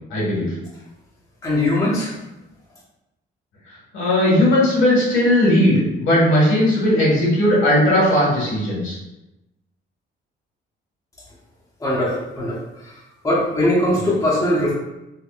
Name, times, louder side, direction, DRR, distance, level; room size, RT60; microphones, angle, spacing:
voice 1, 0.1-0.5 3.7-9.0, left 1 dB, 85° left, -6 dB, 1.4 m, -17 dB
voice 2, 1.4-2.2 11.8-12.9 13.2-14.7, left 1 dB, 15° left, -5 dB, 0.8 m, -20 dB
3.5 x 2.2 x 2.3 m, 0.95 s
cardioid pair, 90°, 20 cm